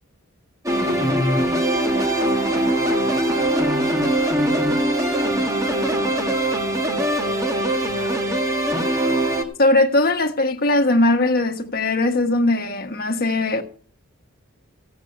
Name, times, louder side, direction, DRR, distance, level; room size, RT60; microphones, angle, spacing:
sound 1, 0.7-9.4, right 1 dB, 15° right, 1.9 m, -21 dB
voice 1, 0.7-1.5 2.2-3.8 4.3-8.4 10.9-11.0, equal, 65° right, 7.6 m, -43 dB
voice 2, 9.6-13.6, left 2 dB, 45° left, 1.4 m, -19 dB
15.5 x 8.1 x 5.6 m
head